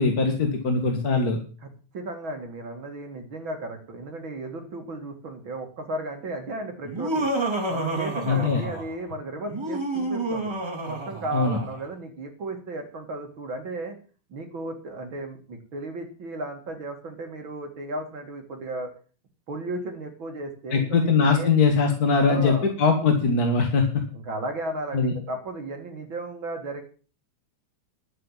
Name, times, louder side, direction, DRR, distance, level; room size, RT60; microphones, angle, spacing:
voice 1, 0.0-1.4 8.3-8.6 11.3-11.6 20.7-24.0 24.9-25.1, left 4 dB, 40° left, 3 dB, 1.6 m, -21 dB
voice 2, 1.6-7.3 7.7-10.6 10.9-14.0 14.3-18.9 19.5-21.5 22.2-22.7 24.1-26.8, right 2 dB, 45° right, 3 dB, 2.4 m, -35 dB
Laughter, 6.8-9.0 9.5-11.8, right 2 dB, 10° right, 2.8 m, -29 dB
11.5 x 7.9 x 7.3 m, 0.38 s
omnidirectional pair, 3.6 m